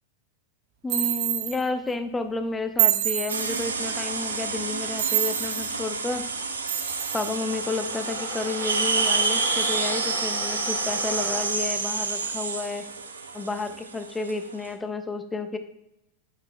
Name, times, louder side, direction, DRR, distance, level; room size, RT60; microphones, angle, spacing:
voice 1, 0.8-6.2 7.1-12.9 13.3-15.6, left 3 dB, 15° left, 8 dB, 0.7 m, -31 dB
sound 1, 0.9-1.6 2.8-3.7 5.0-5.7 6.7-7.3, right 11 dB, 50° right, 0.9 m, -26 dB
sound 2, 3.3-14.7, right 4 dB, 85° right, 0.6 m, -29 dB
sound 3, 3.6-11.9, left 3 dB, 50° left, 1.7 m, -39 dB
8.8 x 5.9 x 2.5 m, 0.85 s
hypercardioid pair, 95°, 0 cm